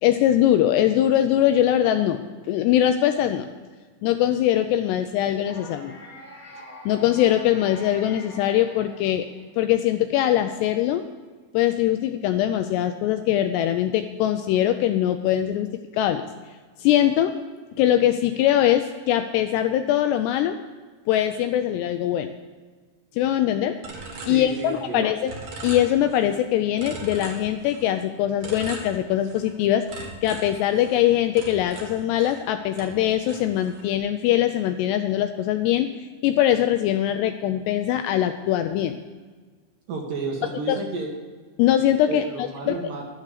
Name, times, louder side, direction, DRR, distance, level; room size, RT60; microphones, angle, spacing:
voice 1, 0.0-3.5 4.0-6.0 6.9-9.3 9.6-11.0 11.5-16.3 16.8-17.3 17.8-20.6 21.1-22.3 23.1-23.8 24.3-25.3 25.6-39.0 40.7-40.8 41.6-42.2 42.7-42.8, left 11 dB, 85° left, 8 dB, 2.5 m, -22 dB
sound 1, 5.4-9.6, left 1 dB, 35° left, 1.4 m, -44 dB
sound 2, 23.8-25.0 25.3-26.4 26.8-28.0 28.4-29.5 29.9-32.5 32.8-33.9, right 3 dB, 45° right, 2.7 m, -39 dB
voice 2, 24.3-25.1 39.9-41.1 42.1-43.0, right 3 dB, 60° right, 0 dB, 2.6 m, -31 dB
11.5 x 9.5 x 6.7 m, 1.5 s
omnidirectional pair, 5.3 m